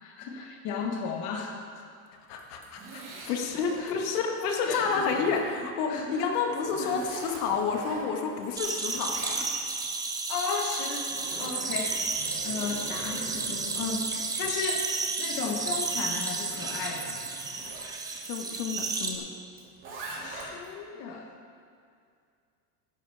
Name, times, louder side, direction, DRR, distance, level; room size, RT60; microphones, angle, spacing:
voice 1, 0.0-1.5 3.8-4.0 4.6-5.1 5.9-6.2 6.8-7.1 10.3-11.1 11.4-12.0 12.4-17.2 20.2-21.3, left 5 dB, 40° left, 1 dB, 1.3 m, -34 dB
voice 2, 2.3-9.5 18.2-19.2, left 5 dB, 80° left, 2 dB, 1.7 m, -30 dB
Zipper (clothing), 2.3-3.9 4.4-5.7 6.2-8.5 8.7-9.9 10.7-17.9 19.5-20.7, right 2 dB, 25° right, 2.4 m, -44 dB
sound 1, 8.6-19.1, right 4 dB, 10° right, 0.4 m, -32 dB
15.0 x 11.0 x 3.5 m, 2.3 s
supercardioid pair, 155°, 46 cm